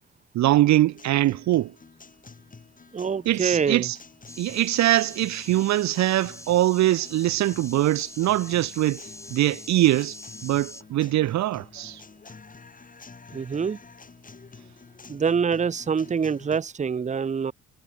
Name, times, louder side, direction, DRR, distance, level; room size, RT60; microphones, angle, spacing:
voice 1, 0.3-1.7 3.3-4.0 4.4-9.0 9.3-10.2 10.4-12.0, right 15 dB, 65° right, 0.6 m, -22 dB
Guitar, 0.6-16.6, left 4 dB, 25° left, 2.7 m, -49 dB
voice 2, 2.9-3.9 13.3-13.8 15.1-17.5, right 6 dB, 25° right, 0.7 m, -25 dB
sound 1, 4.3-10.8, left 1 dB, 10° left, 2.3 m, -43 dB
cardioid pair, 90°, 30 cm